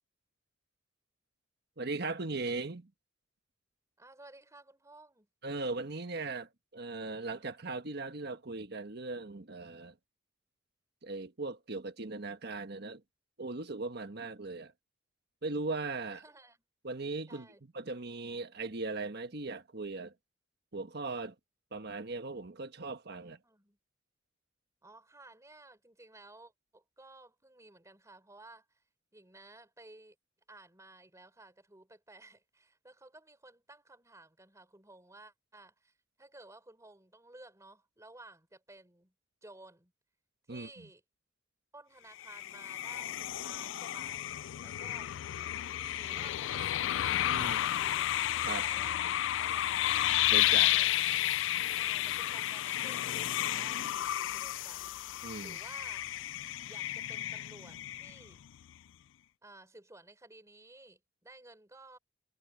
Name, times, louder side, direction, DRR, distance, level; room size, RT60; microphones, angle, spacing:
voice 1, 1.8-2.9 5.4-9.9 11.0-13.0 13.4-14.7 15.4-16.2 16.8-17.5 17.7-20.1 20.7-21.3 21.7-23.4 40.5-40.7 47.2-47.6 48.4-48.6 50.3-50.7 55.2-55.6, right 3 dB, 55° right, 1.4 m, -38 dB
voice 2, 4.0-5.3 16.1-16.6 17.3-17.6 23.2-23.8 24.8-28.8 29.1-30.2 30.5-39.1 39.4-39.9 40.5-41.0 41.7-45.1 45.9-46.9 47.3-48.1 48.6-50.1 50.6-51.1 51.7-54.8 55.4-56.0 56.7-58.4 59.4-62.0, right 2 dB, 15° right, 4.1 m, -55 dB
sound 1, 42.2-58.5, left 13 dB, 70° left, 0.3 m, -32 dB
head